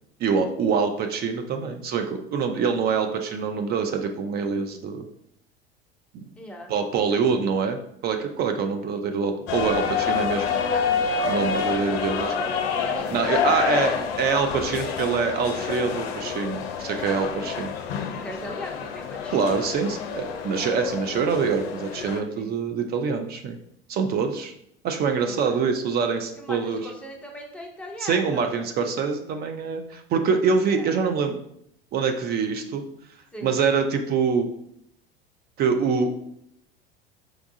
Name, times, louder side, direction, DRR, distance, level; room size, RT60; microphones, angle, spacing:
voice 1, 0.2-5.0 6.1-6.3 6.7-10.5 11.2-12.3 13.1-13.9 14.2-17.7 19.3-23.6 23.9-24.5 24.8-26.8 28.0-31.4 31.9-32.8 33.4-34.5 35.6-36.1, right 5 dB, 30° right, 5 dB, 0.4 m, -25 dB
voice 2, 6.4-6.8 7.1-7.2 11.3-15.0 16.9-17.2 18.1-19.7 22.3-22.5 25.0-25.8 26.3-28.5 30.6-30.9 33.3-33.6, equal, 5° left, -1 dB, 0.7 m, -40 dB
sound 1, 9.5-22.2, left 6 dB, 70° left, 0.5 m, -28 dB
4.7 x 2.3 x 2.6 m, 0.71 s
hypercardioid pair, 75°, 32 cm